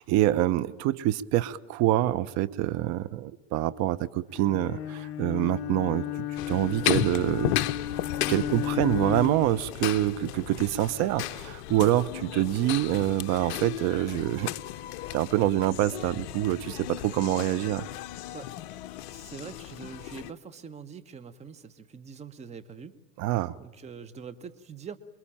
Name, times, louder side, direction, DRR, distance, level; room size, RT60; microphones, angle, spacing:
voice 1, 0.0-6.1 6.5-7.5 8.3-14.5 15.1-17.8 23.2-23.6, right 14 dB, 35° right, 14 dB, 1.0 m, -26 dB
Bowed string instrument, 4.3-9.6, left 10 dB, 30° left, 1.2 m, -33 dB
sound 1, 6.4-20.3, left 14 dB, 45° left, 0.9 m, -35 dB
voice 2, 19.1-22.9 23.6-25.0, right 6 dB, 15° right, 13 dB, 1.3 m, -43 dB
28.0 x 22.5 x 8.9 m, 1.0 s
hypercardioid pair, 120°, 47 cm